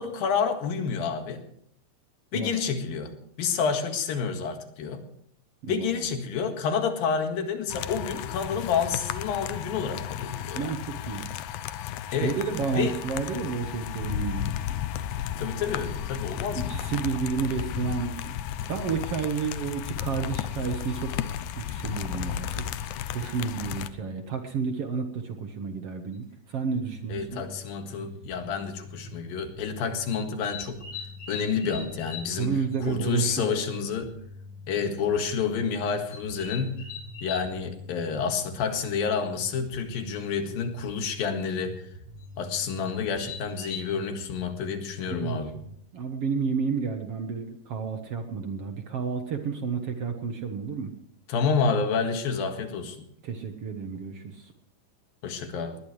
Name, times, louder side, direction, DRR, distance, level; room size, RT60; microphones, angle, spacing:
voice 1, 0.0-1.4 2.3-3.1 3.4-5.0 5.7-10.7 12.1-12.4 12.7-12.9 15.4-16.8 27.1-30.8 31.3-34.1 34.7-36.8 37.2-41.8 42.4-45.6 51.3-53.1 55.2-55.8, left 6 dB, 90° left, 6 dB, 3.6 m, -29 dB
sound 1, 7.7-23.9, left 11 dB, 75° left, 2.2 m, -34 dB
voice 2, 10.5-11.3 12.1-14.6 16.5-18.4 18.7-21.1 21.6-27.4 32.4-33.6 45.1-45.4 45.9-50.9 53.2-54.5, right 5 dB, 60° right, 6 dB, 1.8 m, -31 dB
sound 2, 26.1-26.2 27.6-27.7 28.4-28.6 30.1-32.4 32.7-32.8 33.1-33.2 33.5-33.6 33.9-34.0 34.8-35.0 36.1-37.5 39.6-39.7 39.9-40.3 42.2-42.3 42.9-43.8, left 6 dB, 55° left, 4.9 m, -41 dB
sound 3, 26.7-45.7, left 1 dB, 40° right, 1.6 m, -45 dB
20.0 x 19.5 x 3.3 m, 0.70 s
omnidirectional pair, 4.0 m